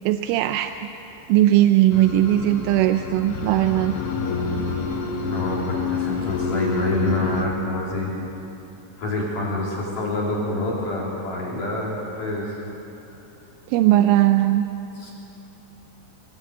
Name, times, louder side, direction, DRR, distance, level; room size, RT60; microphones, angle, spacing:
voice 1, 0.1-0.9 1.3-4.0 13.7-14.7, right 13 dB, 85° right, 8 dB, 3.1 m, -18 dB
sound 1, 1.9-7.5, left 4 dB, 90° left, 4.4 m, -28 dB
voice 2, 5.2-8.1 9.0-12.6 15.0-15.1, left 2 dB, 45° left, -4 dB, 4.0 m, -27 dB
24.5 x 19.0 x 8.3 m, 2.9 s
omnidirectional pair, 5.5 m